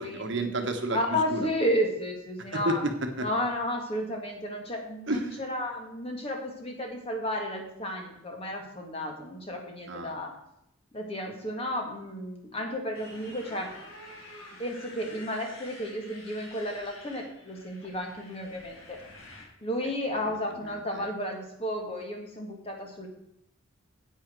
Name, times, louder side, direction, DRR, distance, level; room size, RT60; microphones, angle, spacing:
voice 1, 0.0-1.0 1.3-1.4 2.5-3.3 5.1-5.4 9.9-10.2 20.1-21.1, right 1 dB, 55° right, 5 dB, 1.2 m, -32 dB
voice 2, 0.9-2.8 3.2-10.3 10.9-13.7 14.6-19.0 19.6-23.1, equal, 25° left, 1 dB, 2.0 m, -32 dB
Motorcycle, 12.9-19.4, left 1 dB, 75° left, 4.3 m, -48 dB
10.0 x 8.6 x 4.6 m, 0.81 s
head